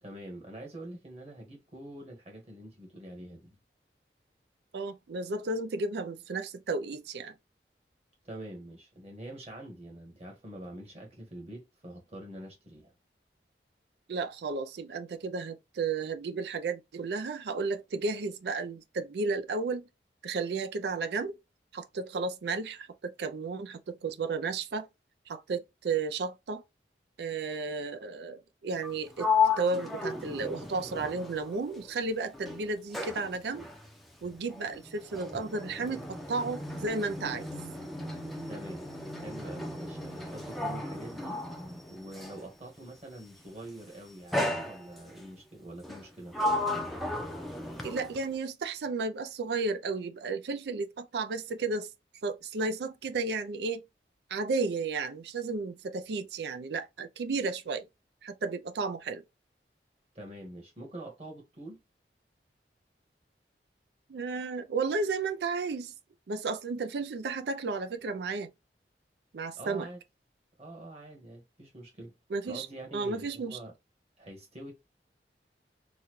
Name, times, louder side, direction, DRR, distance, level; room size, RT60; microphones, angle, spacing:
voice 1, 0.0-3.6 8.2-12.9 38.5-38.8 39.1-41.4 41.9-46.4 60.1-61.8 69.5-70.0 70.6-72.1 72.4-73.7 74.2-74.7, right 1 dB, 35° right, 1.4 m, -45 dB
voice 2, 4.7-7.3 14.1-19.9 20.2-21.4 21.7-24.9 25.3-26.6 27.2-29.3 29.6-33.7 34.2-37.5 47.8-51.9 52.2-53.8 54.3-57.9 58.2-59.2 64.1-65.9 66.3-68.5 69.3-69.9 72.3-72.7 72.9-73.6, right 4 dB, 70° right, 0.4 m, -33 dB
Sliding door, 28.7-32.0 32.3-42.5 43.4-43.7 44.3-45.2 45.8-48.4, left 3 dB, ahead, 0.5 m, -34 dB
4.0 x 2.3 x 3.0 m
head